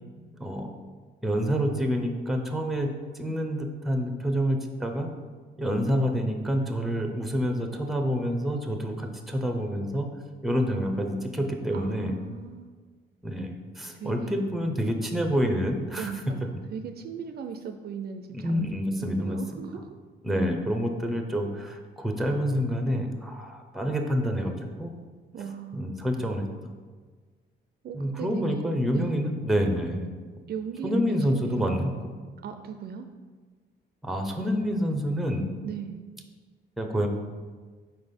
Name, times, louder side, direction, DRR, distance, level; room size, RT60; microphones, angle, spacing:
voice 1, 0.4-0.7 1.2-5.1 5.6-10.1 10.4-12.2 13.2-16.1 18.3-19.4 20.2-24.9 25.7-26.7 27.9-30.1 30.8-32.1 34.0-35.6 36.8-37.1, equal, ahead, 4 dB, 0.7 m, -28 dB
voice 2, 11.7-12.7 13.9-14.5 14.8-14.9 16.0-20.0 25.3-26.1 27.8-29.3 30.5-31.8 32.4-33.1 35.6-36.0, right 6 dB, 55° right, 7 dB, 0.4 m, -38 dB
4.5 x 4.0 x 5.2 m, 1.5 s
cardioid pair, 90°, 20 cm